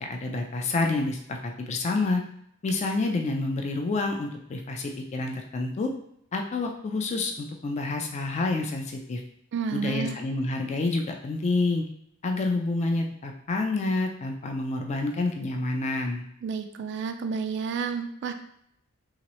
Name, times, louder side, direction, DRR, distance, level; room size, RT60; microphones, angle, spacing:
voice 1, 0.0-2.2 2.6-5.9 6.3-9.2 9.7-11.8 12.2-16.3, left 3 dB, 30° left, 3 dB, 0.3 m, -28 dB
voice 2, 9.5-10.2 16.4-18.3, right 5 dB, 55° right, 8 dB, 0.3 m, -30 dB
2.9 x 2.9 x 2.9 m, 0.72 s
head